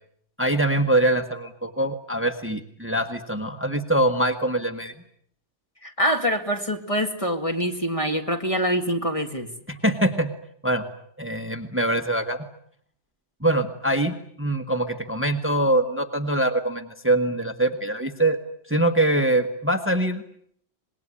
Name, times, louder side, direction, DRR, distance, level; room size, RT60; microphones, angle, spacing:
voice 1, 0.4-4.9 9.7-10.3 10.6-10.8 11.2-12.5 13.4-18.4 18.7-20.2, right 1 dB, 10° right, 7 dB, 1.5 m, -23 dB
voice 2, 5.8-9.5, equal, 30° left, 4 dB, 2.3 m, -25 dB
26.5 x 21.0 x 10.0 m, 0.67 s
omnidirectional pair, 1.2 m